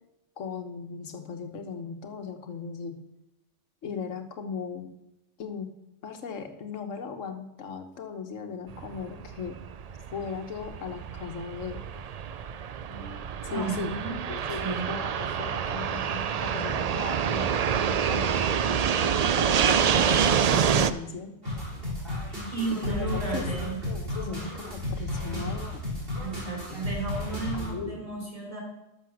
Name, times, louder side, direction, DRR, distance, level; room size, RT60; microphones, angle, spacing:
voice 1, 0.4-3.0 3.8-4.9 5.4-5.7 6.0-9.6 10.1-11.8 12.9-13.9 14.3-21.4 22.7-25.8 27.5-28.0, left 6 dB, 80° left, 6 dB, 1.4 m, -38 dB
Fixed-wing aircraft airplane, 8.7-20.9, right 7 dB, 70° right, 0.3 m, -27 dB
voice 2, 13.5-14.2 14.5-14.9 22.5-23.8 26.2-28.6, right 4 dB, 30° right, -1 dB, 3.0 m, -33 dB
sound 1, 21.4-27.7, left 1 dB, 50° right, 4.0 m, -33 dB
12.0 x 6.5 x 6.3 m, 0.89 s
omnidirectional pair, 1.3 m